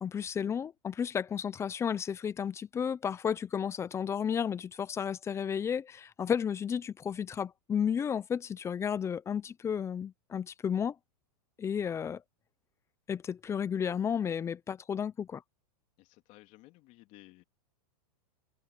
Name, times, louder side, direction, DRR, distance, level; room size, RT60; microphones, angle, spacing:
voice 1, 0.0-10.9 11.6-12.2 13.1-15.4, left 7 dB, 15° left, 0.6 m, -32 dB
voice 2, 16.0-17.4, left 20 dB, 40° left, 3.0 m, -56 dB
hypercardioid pair, 145°, 20 cm